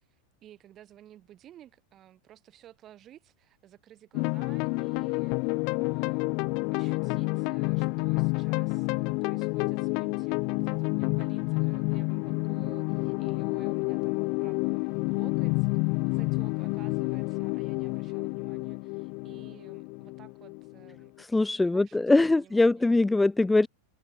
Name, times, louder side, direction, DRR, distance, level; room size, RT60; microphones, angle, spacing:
voice 1, 0.1-6.3 6.7-15.7 16.0-21.1 21.6-22.9, right 12 dB, 30° right, 4.6 m, -54 dB
sound 1, 4.1-21.1, left 33 dB, 50° left, 0.9 m, -29 dB
voice 2, 21.2-23.7, left 2 dB, 5° left, 0.3 m, -22 dB
supercardioid pair, 145°, 0 cm